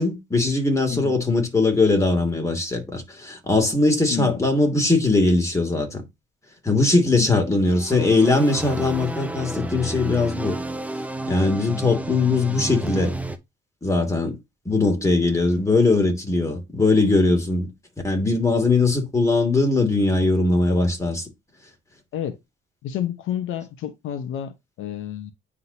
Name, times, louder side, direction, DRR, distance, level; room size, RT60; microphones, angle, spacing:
voice 1, 0.0-6.0 6.6-10.6 11.3-13.1 13.8-14.4 14.6-17.7 18.0-21.3, left 3 dB, 15° left, 2.8 m, -20 dB
voice 2, 4.1-4.4 7.1-7.3 22.1-22.4 22.8-25.3, left 10 dB, 85° left, 1.1 m, -30 dB
sound 1, 7.6-13.4, right 1 dB, 5° right, 0.8 m, -31 dB
9.7 x 3.7 x 2.9 m
cardioid pair, 90°, 20 cm